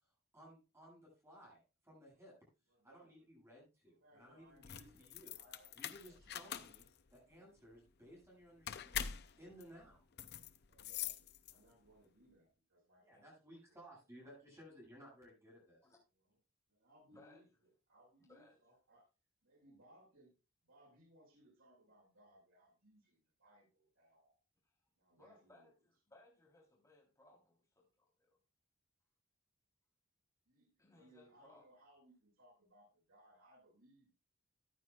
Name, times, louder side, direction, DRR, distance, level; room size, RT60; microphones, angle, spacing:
voice 1, 0.3-2.3 2.8-5.4 5.7-6.8 7.1-9.1 9.4-10.2 13.0-15.8, equal, 15° right, -3 dB, 7.3 m, -59 dB
voice 2, 2.7-3.3 4.0-6.6 10.2-13.3 13.7-13.8 14.2-14.4 16.7-19.1 19.4-20.3 20.6-24.3 25.0-25.7 30.5-34.1, right 1 dB, 85° right, -4 dB, 5.3 m, -67 dB
sound 1, 4.5-11.9, left 9 dB, 50° left, 0.6 m, -45 dB
voice 3, 17.1-17.4 18.3-18.6 24.6-24.7 25.2-28.4 30.8-31.6, left 2 dB, 15° left, -4 dB, 3.5 m, -65 dB
14.5 x 9.3 x 2.4 m, 0.30 s
head